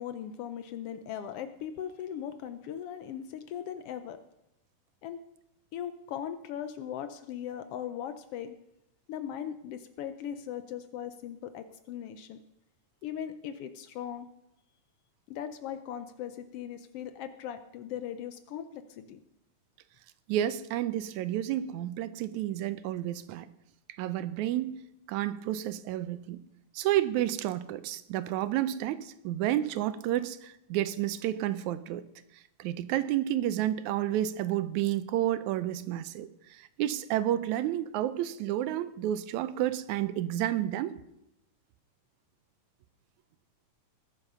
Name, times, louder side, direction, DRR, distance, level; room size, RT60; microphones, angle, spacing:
voice 1, 0.0-4.2 5.0-5.2 5.7-8.6 9.1-12.4 13.0-14.3 15.3-19.2, left 9 dB, 85° left, 10 dB, 1.3 m, -39 dB
voice 2, 20.3-23.5 24.0-24.8 25.1-26.4 26.8-32.0 32.6-41.0, right 12 dB, 80° right, 13 dB, 2.0 m, -30 dB
20.5 x 7.4 x 5.6 m, 0.84 s
omnidirectional pair, 3.5 m